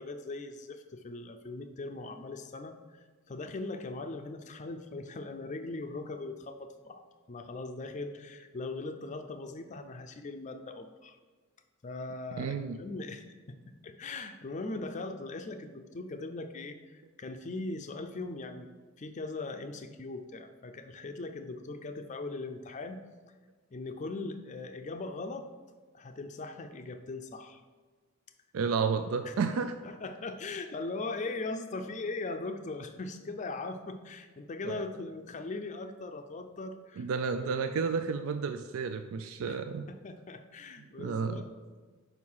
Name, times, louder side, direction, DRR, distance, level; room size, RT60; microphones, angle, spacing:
voice 1, 0.0-11.2 11.8-18.7 19.0-23.0 23.7-25.5 25.9-27.6 29.2-29.3 29.8-37.1 39.5-41.5, left 3 dB, 35° left, 8 dB, 0.4 m, -40 dB
voice 2, 12.4-12.8 28.5-29.7 34.7-34.8 37.0-39.9 41.0-41.4, right 5 dB, 75° right, 8 dB, 0.3 m, -31 dB
5.2 x 4.7 x 5.5 m, 1.4 s
head